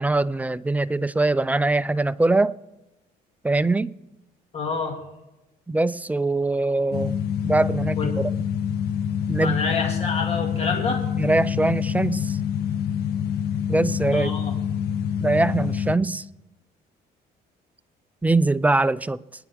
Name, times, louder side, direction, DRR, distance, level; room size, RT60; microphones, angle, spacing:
voice 1, 0.0-2.6 3.4-3.9 5.7-7.2 7.4-8.3 9.3-9.6 11.1-12.4 13.7-14.3 15.2-16.2 18.2-19.2, right 2 dB, 10° right, 0.3 m, -22 dB
voice 2, 4.5-5.0 8.0-8.1 9.4-11.0 14.1-14.5, left 5 dB, 40° left, 2.2 m, -27 dB
sound 1, 6.9-15.9, left 8 dB, 70° left, 1.4 m, -26 dB
22.5 x 9.9 x 3.5 m
cardioid pair, 110°, 17 cm